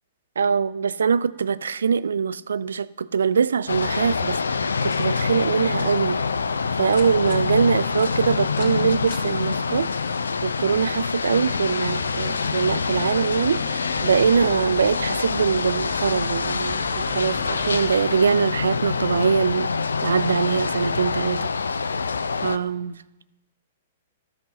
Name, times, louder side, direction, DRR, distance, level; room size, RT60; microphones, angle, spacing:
voice 1, 0.4-6.2 6.8-9.9 10.4-19.7 20.0-21.5 22.4-23.0, right 6 dB, 70° right, 0.3 m, -23 dB
sound 1, 3.7-22.6, left 5 dB, 75° left, 0.4 m, -26 dB
sound 2, 6.1-10.3, left 5 dB, 55° left, 1.6 m, -48 dB
sound 3, 11.7-18.0, equal, ahead, 0.6 m, -42 dB
14.5 x 5.4 x 4.1 m
figure-of-eight pair, 110°, 0 cm